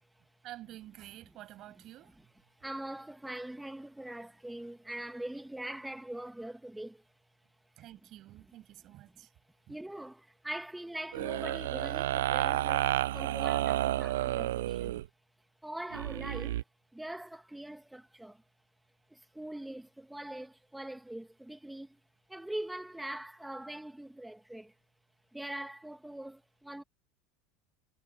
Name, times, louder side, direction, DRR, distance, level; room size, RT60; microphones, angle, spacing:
voice 1, 0.4-2.2 7.8-9.3 9.7-9.8, right 14 dB, 50° right, 7.4 m, -49 dB
voice 2, 2.5-7.0 9.1-9.2 9.7-15.0 15.6-16.6 16.9-18.4 19.1-22.0 22.3-24.7 25.3-26.8, right 1 dB, 5° right, 2.0 m, -42 dB
sound 1, 11.1-15.1 15.9-16.6, right 14 dB, 85° right, 0.4 m, -31 dB
hypercardioid pair, 95°, 0 cm